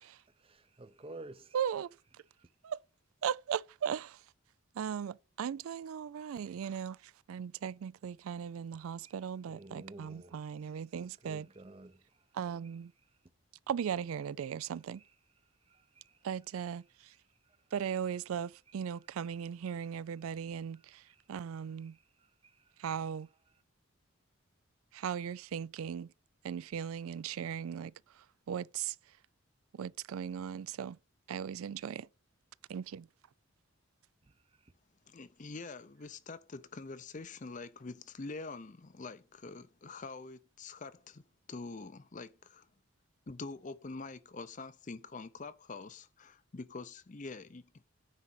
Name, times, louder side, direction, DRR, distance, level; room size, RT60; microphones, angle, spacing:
voice 1, 0.4-1.6 9.1-9.2 9.5-10.4 11.2-12.0 15.7-16.1 21.1-21.2 22.4-22.5, right 2 dB, 25° right, 0.6 m, -50 dB
voice 2, 1.5-1.9 2.6-2.8 3.2-4.2 4.8-7.0 7.3-11.5 12.3-12.9 13.7-15.0 16.2-16.8 17.7-21.0 21.3-21.9 22.8-23.3 24.9-26.1 26.4-27.9 28.5-28.9 29.7-31.0 31.3-32.1 32.7-33.1, right 8 dB, 80° right, 0.3 m, -37 dB
voice 3, 35.1-41.2 41.5-42.7 43.3-47.8, left 3 dB, 35° left, 0.5 m, -45 dB
9.7 x 4.0 x 7.4 m
head